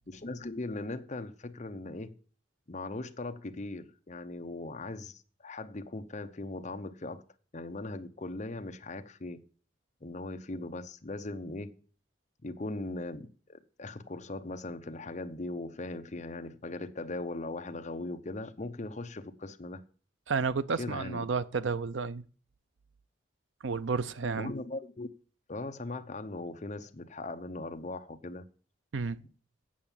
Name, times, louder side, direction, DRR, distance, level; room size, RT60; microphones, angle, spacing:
voice 1, 0.1-2.2 2.7-7.2 7.5-9.4 10.0-11.7 12.4-19.8 20.8-21.3 24.3-25.1 25.5-28.5, left 2 dB, 40° left, 0.8 m, -39 dB
voice 2, 20.3-22.2 23.6-24.5 28.9-29.2, right 5 dB, 75° right, 0.6 m, -31 dB
8.6 x 6.9 x 7.4 m
head